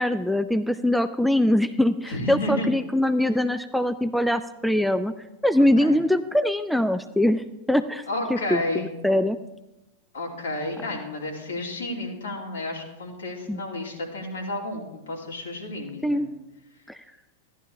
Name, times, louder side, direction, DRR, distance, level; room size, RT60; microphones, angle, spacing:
voice 1, 0.0-5.1 5.4-8.0 8.3-9.4 13.5-13.6 16.0-16.3 16.9-17.0, left 1 dB, ahead, 11 dB, 0.4 m, -23 dB
voice 2, 2.0-2.7 5.8-6.0 8.1-8.9 10.1-16.3, left 2 dB, 65° left, -1 dB, 2.7 m, -31 dB
14.5 x 11.0 x 3.3 m, 0.97 s
figure-of-eight pair, 90°, 0 cm